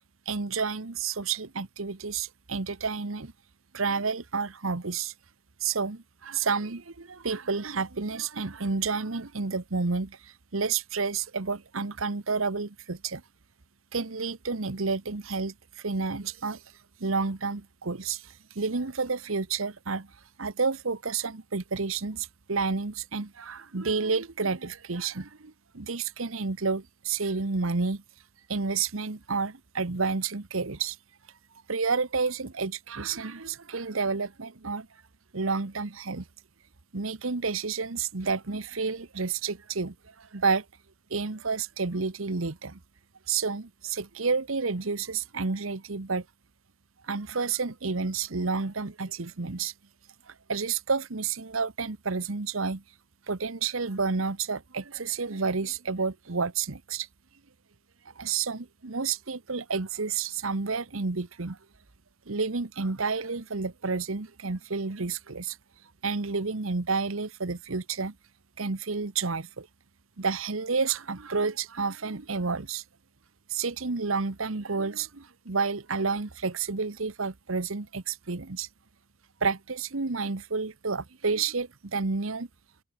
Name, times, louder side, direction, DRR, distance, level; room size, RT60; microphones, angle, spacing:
voice 1, 0.3-3.3 3.7-5.1 5.6-13.2 13.9-16.6 17.0-20.1 20.4-28.0 28.5-31.0 31.7-34.9 35.3-36.2 36.9-40.6 41.1-42.8 43.3-46.2 47.0-49.7 50.3-52.8 53.3-57.1 58.0-61.6 62.3-65.6 66.0-68.1 68.6-69.7 70.2-72.8 73.5-78.7 79.4-82.5, right 4 dB, 75° right, 1.2 m, -30 dB
head